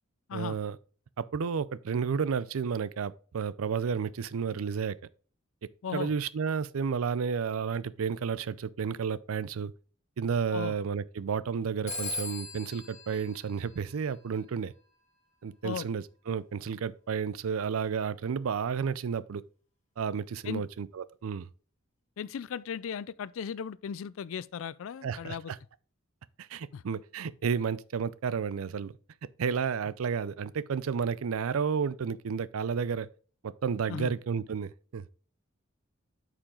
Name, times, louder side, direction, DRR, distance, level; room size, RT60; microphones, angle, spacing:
voice 1, 0.3-0.8 1.2-5.0 5.9-9.7 10.2-14.7 15.4-19.4 20.0-21.5 25.0-25.6 26.4-28.9 29.4-33.1 33.4-35.0, right 6 dB, 85° right, 0.4 m, -32 dB
voice 2, 5.8-6.1 10.5-10.8 15.6-15.9 20.4-20.7 22.2-25.5 26.7-26.8 33.9-34.1, left 7 dB, 70° left, 0.4 m, -36 dB
Telephone, 11.9-14.4, left 2 dB, 35° left, 2.9 m, -39 dB
8.6 x 5.0 x 3.7 m
head